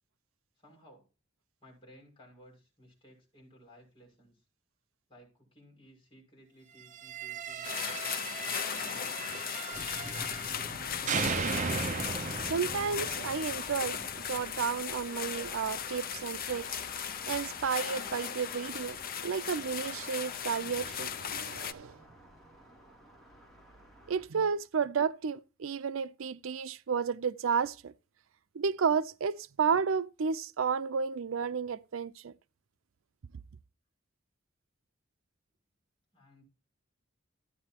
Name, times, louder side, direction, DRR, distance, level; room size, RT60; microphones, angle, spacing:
voice 1, 0.6-1.1 1.6-4.4 5.1-7.8 8.3-9.7 36.1-36.4, equal, 25° left, 6.1 m, -58 dB
sound 1, 6.9-10.8 11.1-14.1, right 5 dB, 40° right, 0.6 m, -36 dB
sound 2, 7.6-21.7, left 8 dB, 45° left, 0.8 m, -37 dB
sound 3, 9.7-24.3, right 1 dB, ahead, 2.9 m, -51 dB
voice 2, 12.4-16.8 17.3-19.0 19.2-22.0 24.1-27.9 28.5-32.3, right 6 dB, 80° right, 0.5 m, -32 dB
14.5 x 9.4 x 2.9 m
head